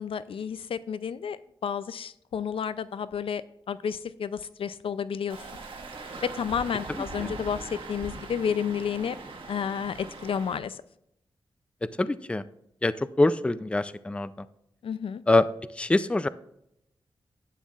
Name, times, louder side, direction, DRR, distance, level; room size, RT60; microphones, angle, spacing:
voice 1, 0.0-3.4 3.7-5.4 6.2-9.2 9.5-10.8 14.8-15.2, left 7 dB, 75° left, 15 dB, 0.4 m, -31 dB
sound 1, 5.3-10.6, right 3 dB, 75° right, 1.5 m, -41 dB
voice 2, 6.9-7.3 11.8-12.4 12.8-14.5 15.3-15.5 15.8-16.3, left 2 dB, 10° left, 15 dB, 0.4 m, -25 dB
11.5 x 9.1 x 2.4 m, 0.78 s
wide cardioid pair, 90°, 9 cm